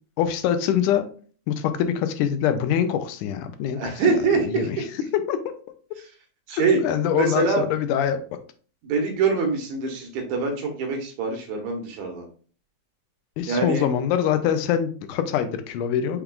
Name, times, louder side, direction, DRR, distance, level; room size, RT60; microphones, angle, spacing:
voice 1, 0.2-1.1 1.5-4.0 4.5-5.4 6.5-8.2 13.4-16.2, left 9 dB, 90° left, 9 dB, 2.1 m, -24 dB
voice 2, 3.8-4.5 6.5-6.8 7.2-7.6 8.8-12.3 13.5-13.8, right 4 dB, 70° right, 2 dB, 2.3 m, -24 dB
5.9 x 3.5 x 2.3 m, 0.41 s
omnidirectional pair, 3.6 m